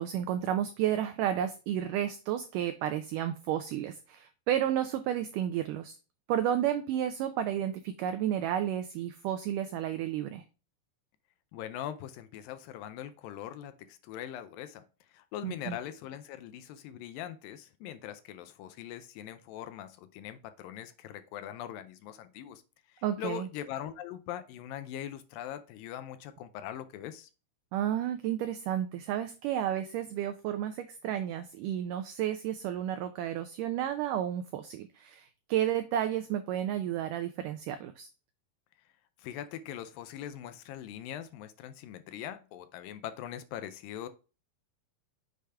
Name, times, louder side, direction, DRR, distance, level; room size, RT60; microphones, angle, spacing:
voice 1, 0.0-6.0 6.3-10.4 15.4-15.8 23.0-23.5 27.7-38.1, right 10 dB, 85° right, 1.9 m, -32 dB
voice 2, 11.5-14.8 15.1-22.6 22.9-27.3 39.2-44.1, left 11 dB, 80° left, 2.2 m, -41 dB
6.7 x 4.9 x 3.3 m
omnidirectional pair, 4.3 m